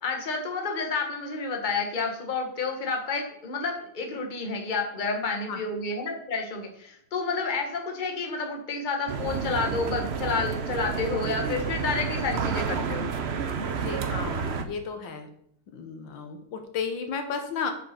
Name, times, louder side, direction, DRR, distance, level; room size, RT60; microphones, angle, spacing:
voice 1, 0.0-13.1, left 4 dB, 25° left, 2 dB, 1.4 m, -30 dB
sound 1, 9.1-14.6, right 5 dB, 55° right, 0.7 m, -30 dB
voice 2, 13.7-15.3 15.7-17.7, left 6 dB, 85° left, 6 dB, 2.0 m, -33 dB
8.6 x 5.5 x 5.8 m, 0.70 s
omnidirectional pair, 2.0 m